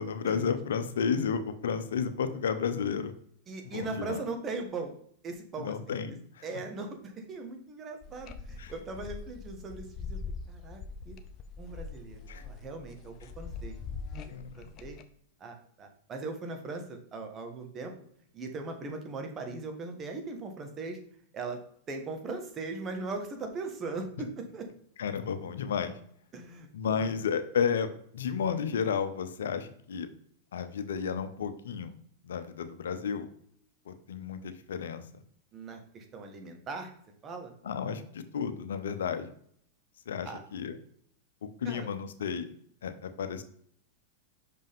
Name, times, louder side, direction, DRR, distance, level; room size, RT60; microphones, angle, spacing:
voice 1, 0.0-3.1 3.6-4.2 5.6-6.4 8.6-8.7 12.3-12.4 14.3-14.7 25.0-26.0 26.7-27.9 28.1-30.1 30.5-31.9 32.2-33.3 33.9-35.2 37.6-39.3 40.1-40.8 41.6-42.5 42.8-43.4, left 6 dB, 80° left, 10 dB, 0.7 m, -32 dB
voice 2, 3.5-4.9 5.2-10.2 10.5-11.2 11.6-13.7 14.2-15.0 15.4-17.9 18.3-21.0 21.3-21.6 21.9-24.7 26.3-27.0 35.5-36.9 37.2-37.5 40.2-40.4 41.6-41.9, right 3 dB, 30° right, 4 dB, 1.5 m, -39 dB
sound 1, 8.0-15.0, left 4 dB, 40° left, 0.7 m, -42 dB
6.0 x 5.4 x 3.6 m, 0.64 s
hypercardioid pair, 110°, 0 cm